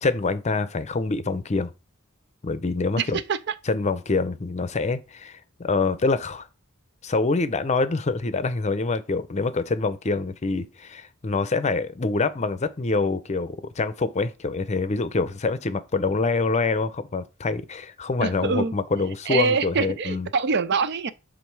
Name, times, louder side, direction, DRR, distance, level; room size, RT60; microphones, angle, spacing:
voice 1, 0.0-1.7 2.4-3.2 3.7-6.5 7.0-20.3, left 3 dB, 35° left, 0.6 m, -25 dB
voice 2, 3.0-3.5 18.2-18.7 19.3-21.1, right 5 dB, 55° right, 0.5 m, -25 dB
7.4 x 3.6 x 4.6 m
head